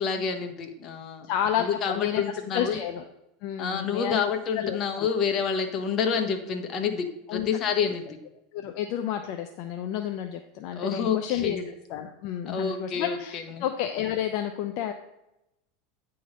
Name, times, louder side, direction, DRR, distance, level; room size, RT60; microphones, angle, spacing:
voice 1, 0.0-1.3 1.8-2.8 3.6-8.2 10.7-11.6 12.5-13.6, left 6 dB, 40° left, 6 dB, 1.3 m, -28 dB
voice 2, 1.2-3.0 3.4-4.2 4.5-5.1 7.3-7.6 8.5-14.9, left 10 dB, 60° left, 5 dB, 0.7 m, -31 dB
9.5 x 3.9 x 5.1 m, 0.86 s
supercardioid pair, 110°, 0 cm